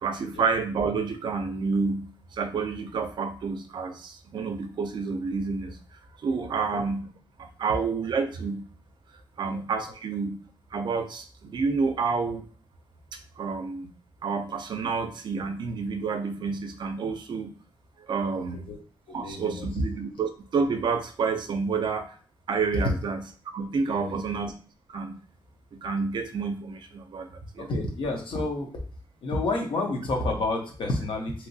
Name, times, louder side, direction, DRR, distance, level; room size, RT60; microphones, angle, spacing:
voice 1, 0.0-5.8 6.2-7.1 7.4-8.7 9.4-10.4 10.7-12.5 13.4-13.9 14.2-17.5 18.1-18.6 19.1-22.1 22.5-23.2 23.5-24.5 24.9-25.2 25.7-27.7, right 5 dB, 60° right, 7 dB, 0.5 m, -29 dB
voice 2, 18.3-18.8 19.1-19.7 23.9-24.2 27.7-28.7 29.2-31.5, left 2 dB, 70° left, 1 dB, 0.9 m, -30 dB
3.0 x 2.9 x 2.7 m, 0.41 s
wide cardioid pair, 130°, 9 cm